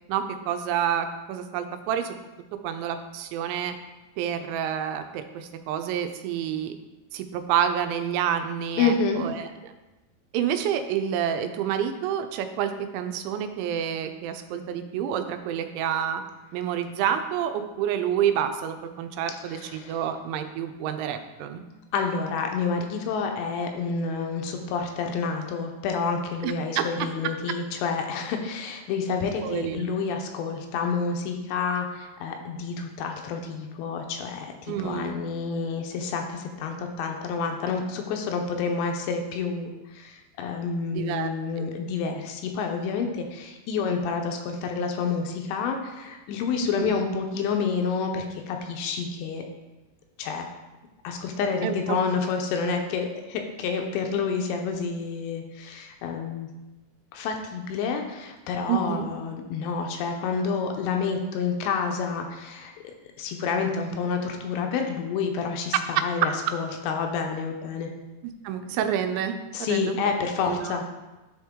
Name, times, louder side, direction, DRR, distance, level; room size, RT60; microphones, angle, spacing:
voice 1, 0.1-2.2 2.6-3.7 4.2-6.8 7.1-9.5 10.3-16.2 16.5-21.6 26.4-26.8 29.4-29.9 34.7-35.2 40.9-41.3 41.6-41.7 46.6-46.9 51.6-51.8 58.7-59.1 68.4-69.4 69.7-70.0 70.5-70.8, right 9 dB, 90° right, 8 dB, 3.0 m, -28 dB
voice 2, 8.8-9.2 19.4-20.0 21.9-49.4 50.2-50.5 51.0-56.5 57.1-67.9 69.5-70.8, left 5 dB, 80° left, 4 dB, 2.8 m, -29 dB
10.5 x 4.4 x 3.6 m, 1.1 s
omnidirectional pair, 5.2 m